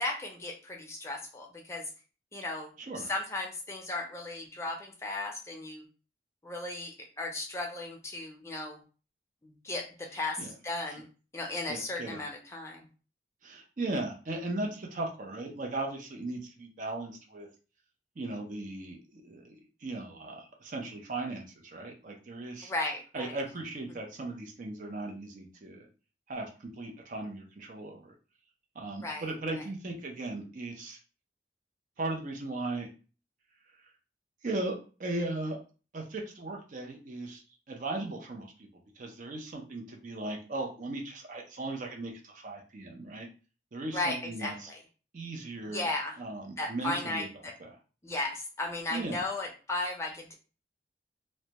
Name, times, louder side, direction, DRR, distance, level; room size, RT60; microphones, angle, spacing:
voice 1, 0.0-1.8 2.3-2.7 3.1-5.8 6.4-8.8 9.4-11.0 11.3-12.9 22.6-23.3 29.0-29.3 43.9-44.8 45.6-46.2 46.6-47.5 48.0-50.3, left 2 dB, 15° left, 0 dB, 0.5 m, -35 dB
voice 2, 2.8-3.1 10.4-10.5 10.9-11.0 11.7-12.2 13.4-17.5 18.2-21.4 21.7-22.7 23.1-25.9 26.3-28.1 28.7-31.0 32.0-32.9 34.4-35.6 35.9-37.4 37.7-38.7 39.0-43.3 43.7-44.7 45.1-45.9 46.2-47.3 47.6-47.8 48.9-49.2, right 2 dB, 45° right, 1 dB, 0.5 m, -37 dB
2.1 x 2.1 x 2.8 m, 0.35 s
head